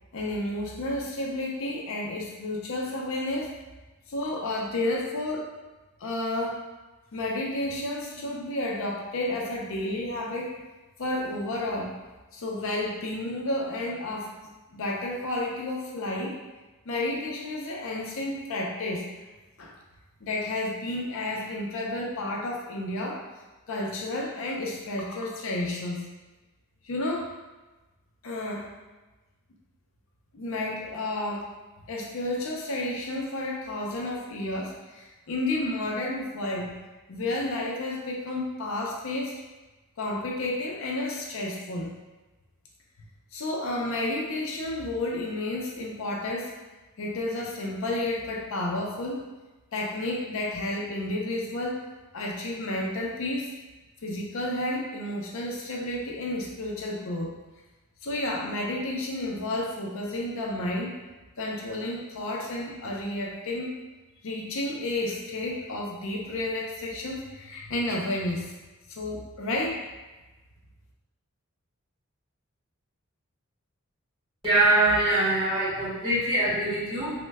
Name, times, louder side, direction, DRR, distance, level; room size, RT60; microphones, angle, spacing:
voice 1, 0.1-3.5 4.1-5.5 6.0-6.6 7.1-10.5 11.0-11.9 12.3-16.4 16.9-19.0 19.6-19.7 20.2-23.2 23.7-26.0 26.8-27.3 28.2-28.7 30.3-31.5 31.9-36.7 37.1-39.4 40.0-41.9 43.3-46.5 47.0-49.3 49.7-51.8 52.1-53.5 54.0-57.3 58.0-60.9 61.4-63.7 64.2-68.5 68.9-69.8, left 1 dB, 65° left, -2 dB, 0.5 m, -31 dB
voice 2, 74.4-77.2, right 2 dB, 25° right, -10 dB, 1.4 m, -23 dB
3.1 x 2.1 x 3.4 m, 1.2 s
head